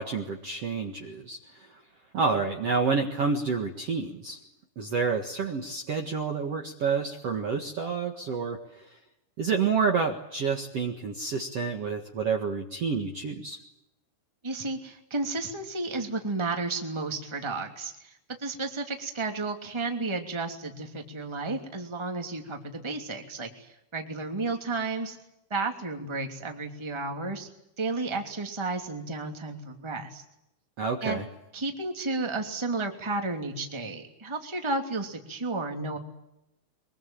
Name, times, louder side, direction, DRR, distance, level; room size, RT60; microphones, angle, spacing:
voice 1, 0.0-1.8 2.1-4.4 4.7-8.9 9.4-13.6 30.8-31.3, right 5 dB, 75° right, 3 dB, 1.4 m, -29 dB
voice 2, 14.4-18.1 18.4-25.2 25.5-27.5 27.8-30.2 31.0-31.2 31.5-36.0, right 3 dB, 10° right, 3 dB, 1.4 m, -32 dB
23.5 x 23.5 x 9.1 m, 0.84 s
omnidirectional pair, 5.8 m